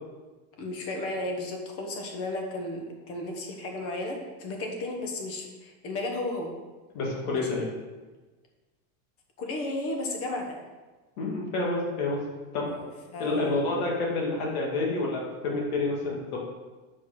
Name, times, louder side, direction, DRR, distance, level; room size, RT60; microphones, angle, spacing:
voice 1, 0.6-6.5 7.3-7.5 9.4-10.6 12.6-13.6, left 2 dB, 30° left, 2 dB, 1.2 m, -34 dB
voice 2, 6.9-7.7 11.2-12.2 12.5-12.7 13.2-16.4, left 2 dB, 70° left, -2 dB, 2.5 m, -28 dB
6.1 x 5.2 x 6.3 m, 1.2 s
supercardioid pair, 165°, 45 cm